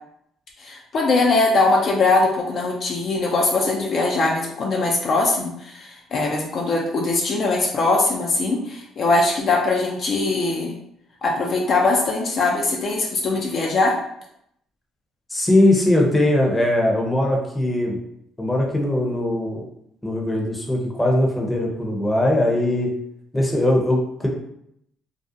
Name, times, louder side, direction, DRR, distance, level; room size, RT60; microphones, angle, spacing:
voice 1, 0.6-10.7 11.2-14.0, left 3 dB, 50° left, -1 dB, 0.4 m, -21 dB
voice 2, 15.3-18.0 18.4-19.6 20.0-22.9 23.3-24.3, left 1 dB, 10° left, -1 dB, 0.6 m, -20 dB
2.4 x 2.0 x 2.6 m, 0.74 s
cardioid pair, 90°, 0 cm